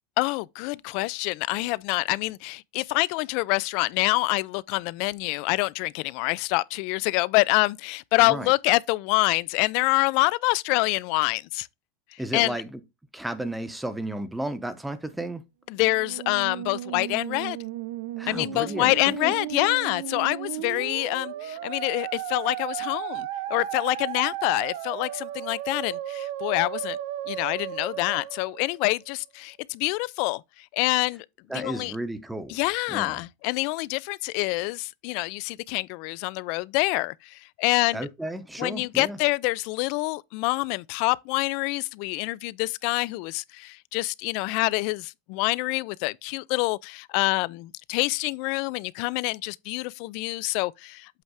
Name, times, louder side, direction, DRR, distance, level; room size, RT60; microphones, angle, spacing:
voice 1, 0.2-11.7 12.3-12.6 15.7-17.6 18.3-27.0 27.3-30.4 30.7-31.3 31.5-31.9 32.5-38.0 38.6-51.2, left 23 dB, 55° left, 0.3 m, -26 dB
voice 2, 12.2-12.8 13.1-15.4 18.2-19.3 31.5-32.6 32.9-33.2 37.9-39.2, right 1 dB, 5° right, 0.8 m, -33 dB
Musical instrument, 15.8-29.1, right 12 dB, 70° right, 0.7 m, -35 dB
8.1 x 3.3 x 4.8 m
supercardioid pair, 155°, 0 cm